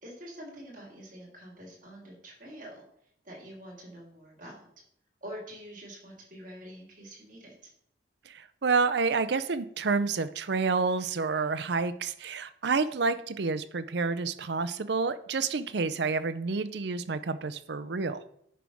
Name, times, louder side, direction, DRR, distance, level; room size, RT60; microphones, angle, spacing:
voice 1, 0.0-2.8 3.2-4.6 5.2-7.5, equal, 45° right, -3 dB, 3.0 m, -46 dB
voice 2, 8.3-18.2, right 4 dB, 60° right, 12 dB, 0.5 m, -29 dB
10.0 x 3.5 x 6.1 m, 0.70 s
head